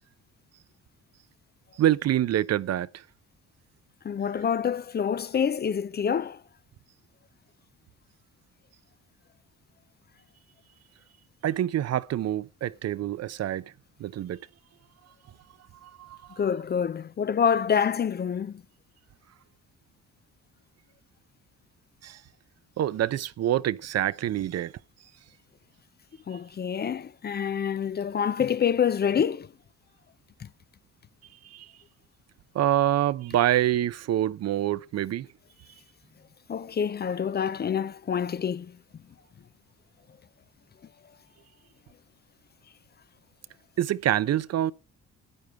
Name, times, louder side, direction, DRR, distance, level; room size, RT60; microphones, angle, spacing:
voice 1, 1.8-2.9 11.4-13.6 14.0-14.4 15.8-16.4 22.0-22.2 22.8-24.7 31.5-31.7 32.5-35.3 43.8-44.7, right 12 dB, 60° right, 0.6 m, -26 dB
voice 2, 4.0-6.4 16.4-18.6 26.3-29.5 36.5-38.8, left 7 dB, 35° left, 0.5 m, -27 dB
12.0 x 9.2 x 3.3 m
cardioid pair, 90°, 30 cm